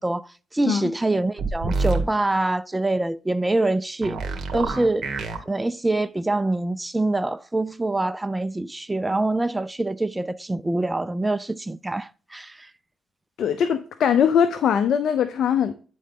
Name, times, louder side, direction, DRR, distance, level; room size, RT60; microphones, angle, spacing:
voice 1, 0.0-4.2 4.5-5.1 5.5-12.7, right 2 dB, 15° right, 0.3 m, -25 dB
sound 1, 1.4-2.0 4.0-5.4, right 4 dB, 55° right, 1.7 m, -26 dB
voice 2, 13.4-15.7, left 8 dB, 65° left, 0.6 m, -21 dB
9.2 x 3.8 x 3.6 m
cardioid pair, 75°, 0 cm